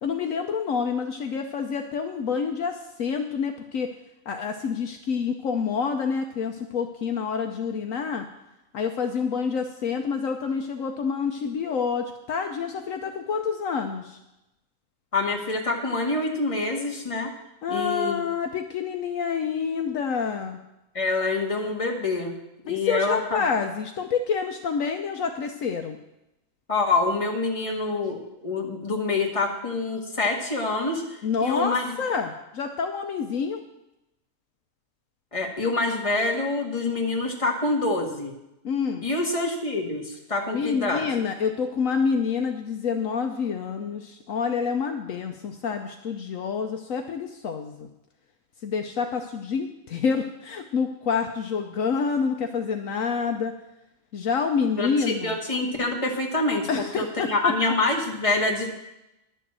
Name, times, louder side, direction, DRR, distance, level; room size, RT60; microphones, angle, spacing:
voice 1, 0.0-3.9 4.3-8.2 8.7-14.2 17.6-20.6 22.7-26.0 31.2-33.6 38.6-39.0 40.5-47.9 48.6-53.5 54.1-55.4 56.7-57.5, left 6 dB, 70° left, 5 dB, 1.1 m, -27 dB
voice 2, 15.1-17.3 17.7-18.2 20.9-22.3 22.6-23.5 26.7-31.9 35.3-38.3 39.0-41.1 54.8-56.7 57.0-58.7, left 3 dB, 20° left, 1 dB, 1.7 m, -26 dB
11.0 x 7.0 x 7.4 m, 0.91 s
omnidirectional pair, 1.5 m